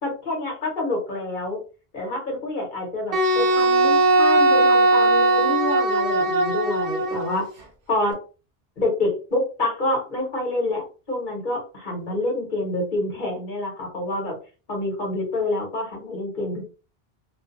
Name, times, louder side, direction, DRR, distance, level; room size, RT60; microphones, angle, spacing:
voice 1, 0.0-1.6 1.9-7.5 7.9-8.2 8.8-14.3 14.7-16.7, left 2 dB, 55° left, 0 dB, 1.2 m, -27 dB
Wind instrument woodwind instrument, 3.1-7.4, right 2 dB, 65° right, 0.9 m, -19 dB
2.5 x 2.3 x 2.5 m, 0.34 s
omnidirectional pair, 1.0 m